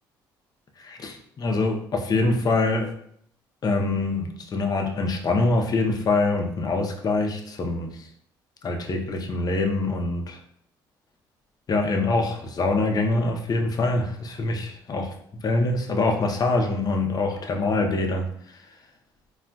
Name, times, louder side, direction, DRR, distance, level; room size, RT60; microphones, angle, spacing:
voice 1, 0.8-2.9 3.6-8.1 8.6-10.4 11.7-15.1 15.4-18.3, left 2 dB, 45° left, 3 dB, 0.6 m, -24 dB
3.8 x 2.3 x 2.2 m, 0.67 s
supercardioid pair, 75°, 10 cm